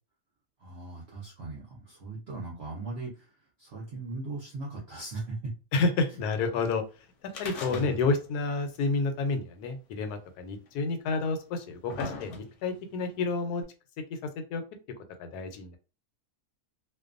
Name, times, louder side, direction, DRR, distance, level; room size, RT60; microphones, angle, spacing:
voice 1, 0.6-5.5 7.7-8.1, right 3 dB, 55° right, -4 dB, 0.8 m, -39 dB
voice 2, 5.7-6.8 7.4-13.6 14.1-14.6 15.2-15.8, left 3 dB, 90° left, 7 dB, 1.1 m, -30 dB
sound 1, 7.3-8.3 8.6-8.7 9.7-9.8 10.7-10.8 11.4-12.8 13.6-13.7, left 4 dB, 65° left, 0.9 m, -39 dB
2.5 x 2.2 x 2.4 m, 0.33 s
omnidirectional pair, 1.6 m